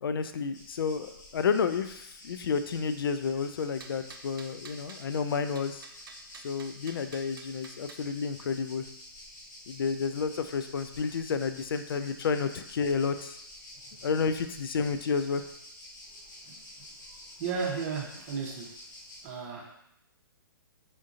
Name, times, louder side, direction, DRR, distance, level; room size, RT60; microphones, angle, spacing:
voice 1, 0.0-5.8 6.4-8.9 9.7-13.4 14.0-15.4, left 5 dB, 80° left, 10 dB, 0.4 m, -30 dB
sound 1, 0.5-19.3, left 1 dB, 55° left, 1.4 m, -49 dB
sound 2, 3.8-5.1 5.5-8.1, right 5 dB, 70° right, 0.5 m, -50 dB
voice 2, 17.1-18.8 19.2-19.8, right 5 dB, 35° right, 0 dB, 0.7 m, -35 dB
5.0 x 2.7 x 2.5 m, 0.76 s
hypercardioid pair, 145°, 12 cm